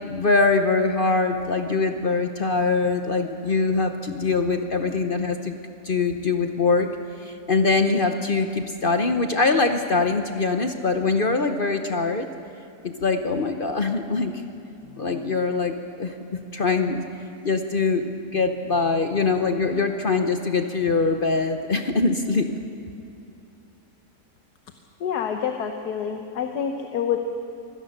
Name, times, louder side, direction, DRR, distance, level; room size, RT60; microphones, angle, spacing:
voice 1, 0.0-5.5 5.8-6.9 7.2-12.3 12.8-14.4 15.0-16.1 16.5-17.0 17.4-22.5, left 4 dB, 40° left, 6 dB, 0.8 m, -23 dB
voice 2, 25.0-27.2, left 8 dB, 70° left, 5 dB, 1.5 m, -27 dB
24.5 x 16.5 x 6.6 m, 2.7 s
omnidirectional pair, 1.8 m